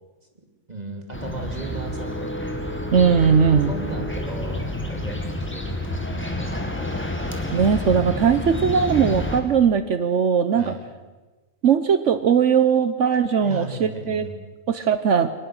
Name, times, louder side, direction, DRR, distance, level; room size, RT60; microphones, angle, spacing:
voice 1, 0.7-2.4 3.7-7.0 10.5-10.8 13.4-14.5, right 2 dB, 30° right, 2 dB, 2.9 m, -36 dB
sound 1, 1.1-9.4, left 1 dB, 10° left, 2.0 m, -29 dB
voice 2, 2.9-3.7 7.5-10.7 11.6-14.2 14.7-15.3, right 7 dB, 65° right, 11 dB, 1.2 m, -19 dB
23.0 x 20.0 x 6.5 m, 1.2 s
omnidirectional pair, 1.4 m